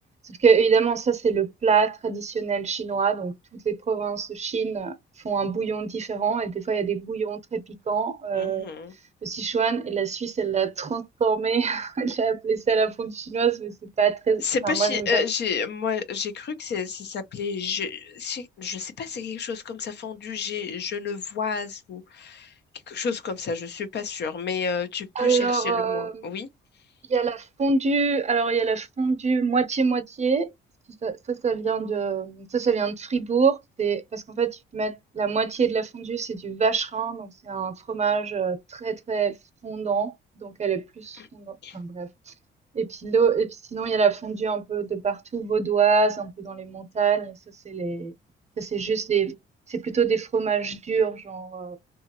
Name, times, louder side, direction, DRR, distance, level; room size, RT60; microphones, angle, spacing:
voice 1, 0.2-4.9 5.2-8.7 9.2-15.2 25.2-26.2 27.1-30.5 31.0-39.3 39.6-42.3 42.7-47.4 47.6-48.1 48.6-49.4 49.7-51.8, right 5 dB, 35° right, 0.7 m, -25 dB
voice 2, 8.3-8.9 14.4-22.6 22.9-26.5 41.2-41.3 41.6-41.8, left 6 dB, 60° left, 0.6 m, -30 dB
2.8 x 2.4 x 2.8 m
cardioid pair, 90°, 20 cm